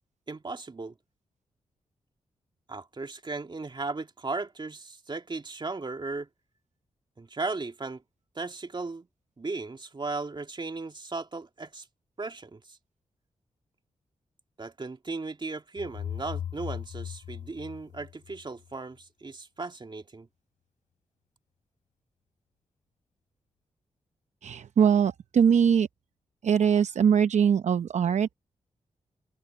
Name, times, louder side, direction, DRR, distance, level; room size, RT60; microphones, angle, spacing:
voice 1, 0.3-0.9 2.7-6.3 7.2-8.0 8.4-9.1 9.4-11.9 12.2-12.8 14.6-20.3, right 3 dB, 35° right, 2.1 m, -36 dB
sound 1, 15.8-18.7, left 9 dB, 85° left, 3.8 m, -38 dB
voice 2, 24.4-25.9 26.4-28.3, right 7 dB, 65° right, 0.7 m, -22 dB
supercardioid pair, 45°, 13 cm